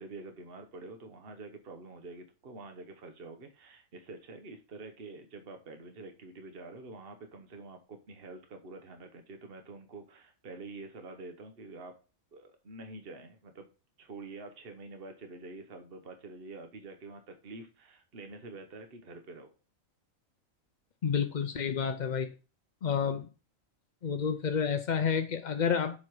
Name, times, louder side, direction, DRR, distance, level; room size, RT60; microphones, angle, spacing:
voice 1, 0.0-11.9 12.3-13.7 14.0-19.5, right 3 dB, 50° right, 6 dB, 1.2 m, -47 dB
voice 2, 21.0-22.3 22.8-23.3 24.0-26.0, left 7 dB, 55° left, 8 dB, 0.5 m, -29 dB
7.4 x 5.6 x 4.7 m, 0.34 s
omnidirectional pair, 1.4 m